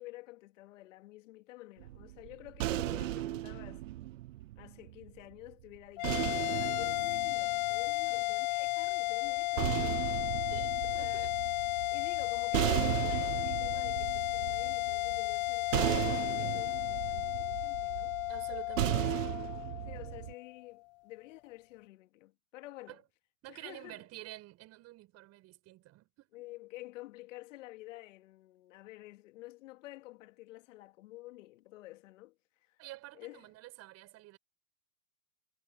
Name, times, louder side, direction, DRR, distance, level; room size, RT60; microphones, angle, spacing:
voice 1, 0.0-3.8 4.6-10.1 10.9-11.3 11.9-18.2 19.8-23.0 23.5-24.0 26.3-32.4 32.6-32.8 33.1-33.4, left 18 dB, 50° left, 2.4 m, -50 dB
sound 1, 1.8-5.1 6.0-8.3 9.3-20.3, right 15 dB, 55° right, 0.7 m, -36 dB
sound 2, 6.0-20.6, left 23 dB, 30° left, 0.5 m, -33 dB
voice 2, 10.5-11.3 18.3-19.3 22.9-23.0 23.4-26.3 32.8-34.4, right 17 dB, 30° right, 6.6 m, -49 dB
hypercardioid pair, 120°, 47 cm